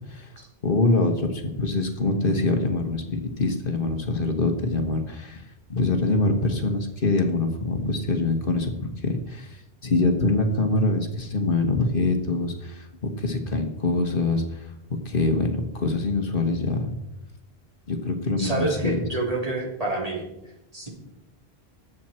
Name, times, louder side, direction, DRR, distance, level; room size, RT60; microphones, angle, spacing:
voice 1, 0.6-5.4 5.7-14.7 15.0-16.9 17.9-19.0, left 2 dB, 55° left, 5 dB, 1.5 m, -24 dB
voice 2, 18.4-20.2 20.7-20.9, right 2 dB, 35° right, -3 dB, 3.4 m, -27 dB
20.0 x 7.7 x 4.4 m, 0.89 s
omnidirectional pair, 1.1 m